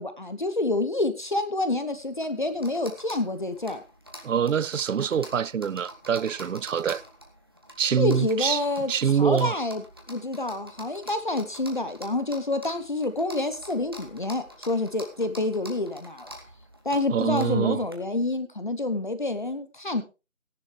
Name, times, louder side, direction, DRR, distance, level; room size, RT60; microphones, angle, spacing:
voice 1, 0.0-3.8 8.0-16.3 16.8-20.0, left 2 dB, 35° left, 1.0 m, -28 dB
sound 1, 1.9-17.9, equal, 20° right, 1.0 m, -47 dB
voice 2, 4.2-7.0 7.8-9.6 17.1-17.8, right 7 dB, 70° right, 0.6 m, -25 dB
15.0 x 10.5 x 3.4 m
figure-of-eight pair, 175°, 40 cm